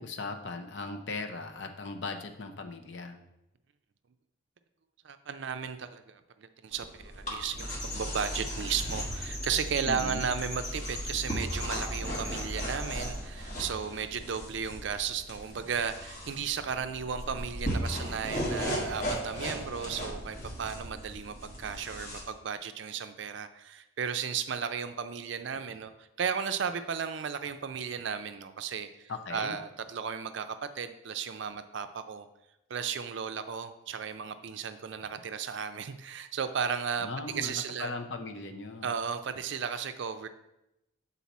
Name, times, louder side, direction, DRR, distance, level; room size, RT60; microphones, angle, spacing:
voice 1, 0.0-3.2 9.9-10.3 29.1-29.6 37.0-38.9, left 3 dB, 60° left, 5 dB, 0.7 m, -38 dB
voice 2, 5.0-32.3 32.7-37.9 38.8-40.3, right 7 dB, 65° right, 10 dB, 0.4 m, -35 dB
sound 1, 6.7-22.2, equal, 35° left, 1.5 m, -38 dB
sound 2, 7.5-13.2, equal, 15° left, 1.1 m, -37 dB
7.2 x 4.1 x 4.1 m, 0.90 s
head